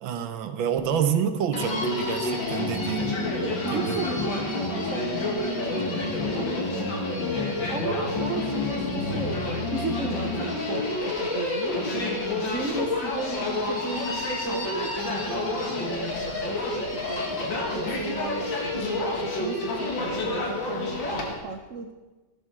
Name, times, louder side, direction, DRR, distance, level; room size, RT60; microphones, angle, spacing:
voice 1, 0.0-3.2 3.7-4.0, right 8 dB, 75° right, 9 dB, 1.7 m, -28 dB
Human voice, 1.5-21.3, left 2 dB, 70° left, 2.8 m, -29 dB
voice 2, 3.4-7.3 7.7-9.4 9.7-11.8 12.4-17.3 17.7-21.9, right 5 dB, 55° right, 4 dB, 0.9 m, -35 dB
15.0 x 13.0 x 4.6 m, 1.2 s
omnidirectional pair, 2.2 m